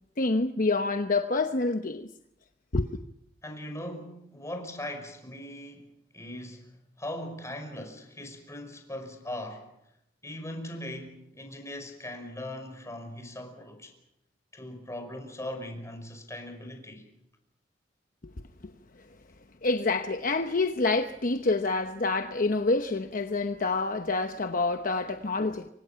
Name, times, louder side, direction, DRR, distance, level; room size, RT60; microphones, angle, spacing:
voice 1, 0.2-2.1 2.7-2.9 19.6-25.7, left 3 dB, 50° left, 1.0 m, -27 dB
voice 2, 3.4-9.7 10.2-13.9 14.5-17.1, left 1 dB, 15° left, 5.4 m, -40 dB
27.5 x 24.5 x 5.8 m
head